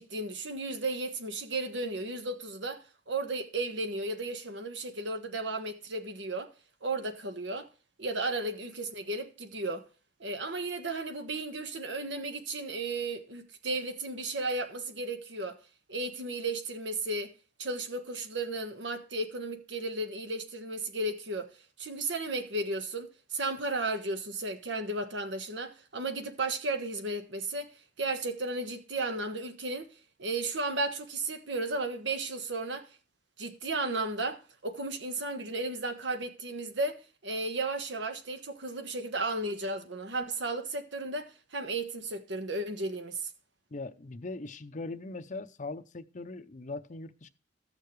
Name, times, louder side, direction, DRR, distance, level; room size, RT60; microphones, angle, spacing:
voice 1, 0.0-6.5 6.8-7.7 8.0-9.9 10.2-15.6 15.9-17.3 17.6-21.5 21.8-27.7 28.0-29.9 30.2-32.9 33.4-43.3, right 2 dB, 75° right, 1.3 m, -34 dB
voice 2, 43.7-47.3, left 3 dB, 40° left, 0.6 m, -40 dB
14.5 x 6.6 x 3.2 m
head